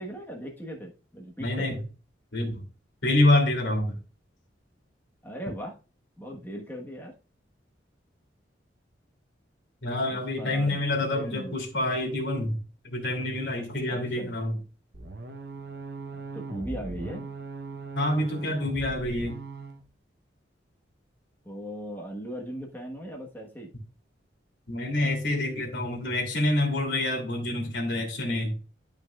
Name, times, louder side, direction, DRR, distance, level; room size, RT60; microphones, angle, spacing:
voice 1, 0.0-1.8 5.2-5.8 6.2-7.2 10.1-11.5 13.9-14.4 16.3-17.3 21.4-23.7, equal, 10° left, -1 dB, 1.3 m, -38 dB
voice 2, 1.4-1.8 2.3-2.6 3.0-4.0 9.8-12.6 12.8-14.6 17.9-19.4 24.7-28.6, left 1 dB, 75° left, 3 dB, 2.9 m, -27 dB
sound 1, 14.9-19.8, right 3 dB, 60° right, 1.0 m, -39 dB
12.5 x 5.2 x 2.4 m, 0.33 s
head